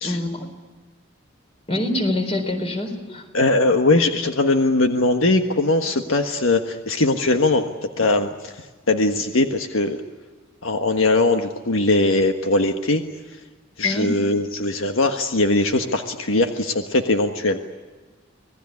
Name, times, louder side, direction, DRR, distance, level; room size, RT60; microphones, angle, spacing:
voice 1, 0.0-0.5 1.7-3.2 13.8-14.1, left 1 dB, 30° left, 6 dB, 4.1 m, -25 dB
voice 2, 3.3-7.7 8.0-8.5 8.9-10.0 10.6-13.0 13.8-17.6, left 2 dB, 75° left, 5 dB, 1.5 m, -20 dB
26.5 x 18.5 x 9.7 m, 1.3 s
head